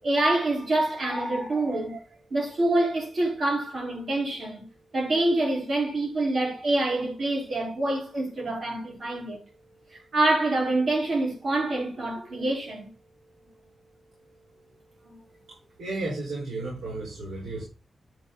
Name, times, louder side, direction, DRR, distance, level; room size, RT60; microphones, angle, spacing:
voice 1, 0.0-2.0 2.3-4.7 4.9-9.4 9.9-12.9 15.0-15.2, right 2 dB, 45° right, 4.4 m, -26 dB
voice 2, 15.5-17.6, right 2 dB, 80° right, 5.0 m, -33 dB
10.0 x 6.3 x 4.0 m
wide cardioid pair, 175°, 0 cm